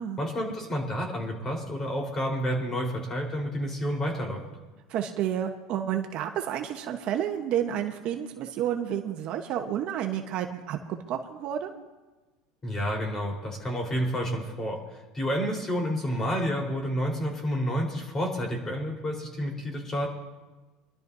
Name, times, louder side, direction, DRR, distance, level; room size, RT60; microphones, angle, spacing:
voice 1, 0.2-4.4 12.6-14.8 15.1-20.1, equal, 20° left, 0 dB, 4.2 m, -29 dB
voice 2, 4.9-11.7, right 10 dB, 50° right, 4 dB, 1.1 m, -30 dB
26.5 x 12.0 x 2.7 m, 1.2 s
supercardioid pair, 130°, 2 cm